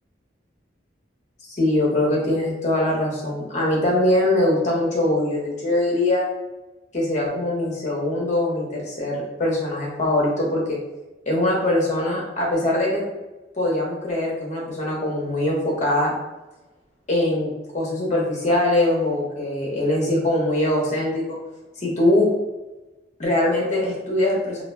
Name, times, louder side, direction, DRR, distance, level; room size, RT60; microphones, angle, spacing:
voice 1, 1.5-6.2 6.9-10.8 11.3-13.0 13.6-16.1 17.1-21.4 21.8-22.3 23.2-24.6, left 1 dB, 40° left, -2 dB, 0.7 m, -22 dB
2.3 x 2.1 x 3.3 m, 1.1 s
head